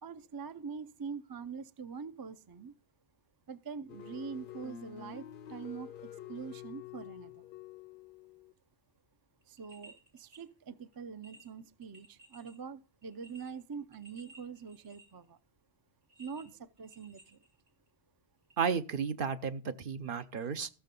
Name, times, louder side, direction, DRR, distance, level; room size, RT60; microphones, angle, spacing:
voice 1, 0.0-2.7 3.5-7.5 9.4-15.4 16.2-17.4, right 6 dB, 30° right, 0.4 m, -44 dB
sound 1, 3.9-8.5, left 11 dB, 60° left, 0.8 m, -48 dB
sound 2, 9.4-10.4 10.9-11.0 11.2-12.6 13.0-15.2 16.1-17.9 18.5-18.6, right 2 dB, 80° right, 3.4 m, -58 dB
voice 2, 18.6-20.7, right 6 dB, 60° right, 0.9 m, -33 dB
14.0 x 6.6 x 5.3 m
omnidirectional pair, 1.1 m